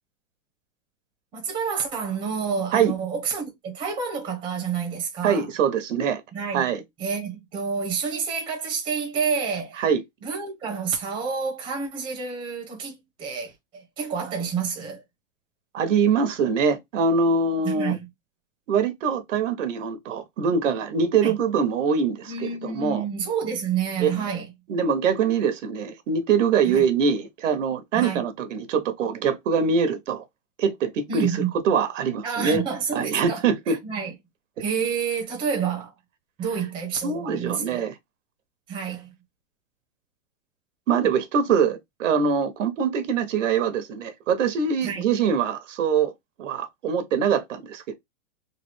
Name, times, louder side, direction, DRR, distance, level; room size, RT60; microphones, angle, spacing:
voice 1, 1.3-5.5 6.3-6.7 7.0-9.8 10.2-15.0 17.6-18.1 21.2-21.3 22.3-24.5 26.7-26.8 27.9-28.2 31.1-31.5 32.2-33.4 33.7-34.1 34.6-35.9 36.4-37.9 38.7-39.1 44.8-45.1, right 6 dB, 15° right, 0.8 m, -29 dB
voice 2, 5.2-6.2 6.5-6.8 9.8-10.0 15.7-18.0 18.7-23.0 24.0-24.2 24.7-30.2 30.6-32.6 32.9-33.8 37.0-37.9 40.9-46.1 46.4-47.9, right 6 dB, 80° right, 0.9 m, -23 dB
3.2 x 2.3 x 3.1 m
supercardioid pair, 165°, 37 cm